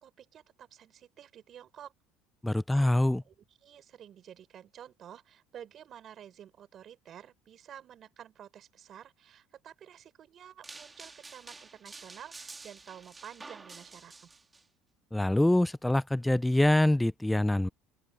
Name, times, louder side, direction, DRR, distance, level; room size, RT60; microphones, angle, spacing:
voice 1, 0.0-1.9 2.7-2.9 3.3-14.3, right 10 dB, 45° right, 3.9 m, -51 dB
voice 2, 2.4-3.2 15.1-17.7, left 1 dB, 5° left, 0.3 m, -25 dB
sound 1, 10.6-14.6, right 3 dB, 15° right, 2.8 m, -49 dB
open air
supercardioid pair, 115°, 0 cm